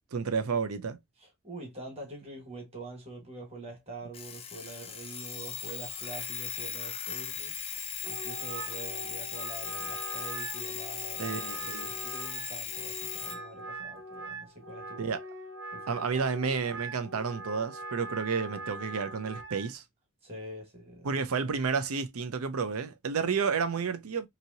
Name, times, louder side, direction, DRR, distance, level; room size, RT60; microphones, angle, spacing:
voice 1, 0.1-1.0 11.2-11.9 15.0-15.2 15.9-19.8 21.0-24.3, right 5 dB, 85° right, 0.6 m, -31 dB
voice 2, 1.2-15.1 15.7-16.3 20.2-21.3, right 2 dB, 30° right, 1.3 m, -45 dB
Alarm, 4.1-13.4, left 7 dB, 25° left, 0.4 m, -38 dB
Wind instrument woodwind instrument, 8.0-19.7, right 2 dB, 60° right, 0.9 m, -42 dB
2.9 x 2.8 x 2.6 m
head